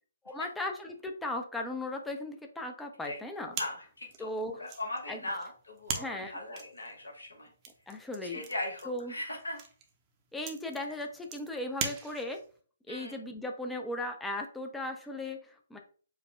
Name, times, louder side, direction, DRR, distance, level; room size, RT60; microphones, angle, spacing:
voice 1, 0.2-3.6 4.2-4.6 5.1-5.2 6.0-6.4 7.9-8.4 8.9-9.2 10.3-12.4 12.9-15.8, left 1 dB, 5° left, 3 dB, 0.5 m, -37 dB
voice 2, 3.5-4.3 4.6-7.5 8.2-9.6 12.9-13.2, left 1 dB, 75° left, 0 dB, 1.1 m, -39 dB
sound 1, 3.5-12.6, right 6 dB, 25° right, 0.7 m, -42 dB
4.7 x 2.2 x 3.3 m, 0.43 s
figure-of-eight pair, 130°, 0 cm